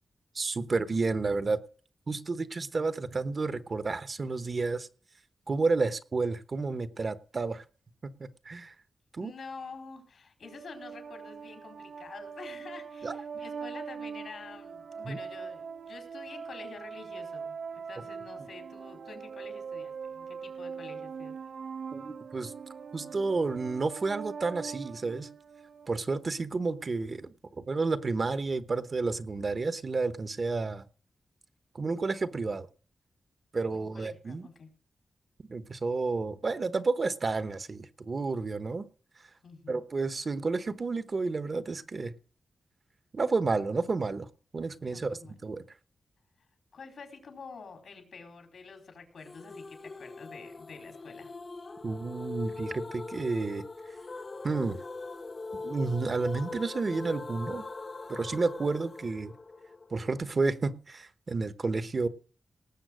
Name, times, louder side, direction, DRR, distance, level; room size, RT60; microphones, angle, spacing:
voice 1, 0.3-1.6 2.1-4.9 5.5-7.6 8.2-8.7 9.1-9.3 13.0-13.1 15.0-15.2 21.9-22.5 22.9-25.3 25.9-30.8 31.7-32.7 33.5-34.5 35.5-38.8 39.7-42.1 43.1-44.3 44.5-45.2 45.4-45.6 51.8-53.6 54.4-54.8 55.6-57.7 58.1-59.3 59.9-62.1, right 3 dB, 45° right, 12 dB, 1.0 m, -31 dB
voice 2, 9.2-21.3 33.7-34.7 39.4-39.8 44.8-45.3 46.7-51.3, left 4 dB, 80° left, 4 dB, 4.2 m, -48 dB
sound 1, 10.4-25.9, right 6 dB, 65° right, 0.6 m, -42 dB
sound 2, 49.3-60.2, left 3 dB, 40° left, 1.0 m, -41 dB
18.5 x 7.2 x 6.3 m, 0.40 s
wide cardioid pair, 95°, 0 cm